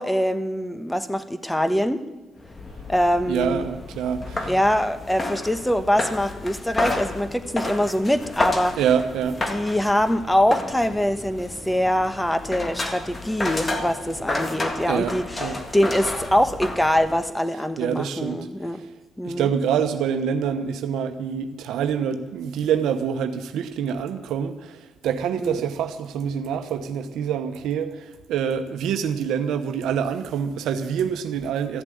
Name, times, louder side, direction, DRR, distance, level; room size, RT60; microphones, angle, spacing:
voice 1, 0.0-2.0 2.9-3.7 4.4-8.8 9.5-18.8 19.2-19.5 25.4-25.6, equal, 5° left, 11 dB, 1.1 m, -23 dB
sound 1, 2.4-17.3, left 2 dB, 30° left, 1.8 m, -31 dB
voice 2, 3.3-4.5 8.8-9.6 14.9-15.6 17.8-18.5 18.8-18.9 19.2-31.8, right 8 dB, 85° right, 8 dB, 1.0 m, -26 dB
14.0 x 7.5 x 9.9 m, 1.0 s
cardioid pair, 90°, 0 cm